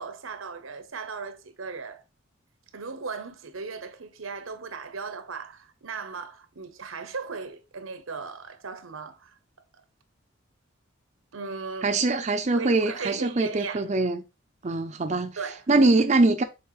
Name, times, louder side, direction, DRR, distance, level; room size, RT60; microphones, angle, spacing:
voice 1, 0.0-2.0 2.7-9.4 11.3-12.0 12.6-13.8 15.4-15.6, right 5 dB, 75° right, 0.9 m, -37 dB
voice 2, 11.8-14.2 14.6-15.4 15.7-16.4, right 2 dB, 35° right, 0.5 m, -23 dB
7.0 x 4.4 x 3.1 m
head